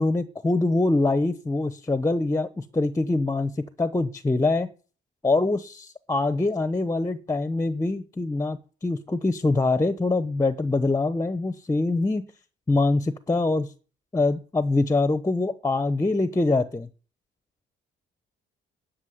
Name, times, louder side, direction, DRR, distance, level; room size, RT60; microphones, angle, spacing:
voice 1, 0.0-3.5 3.8-4.7 5.2-12.2 12.7-13.7 14.1-16.9, left 2 dB, 15° left, 13 dB, 0.8 m, -24 dB
11.0 x 6.4 x 7.9 m, 0.39 s
cardioid pair, 90°, 20 cm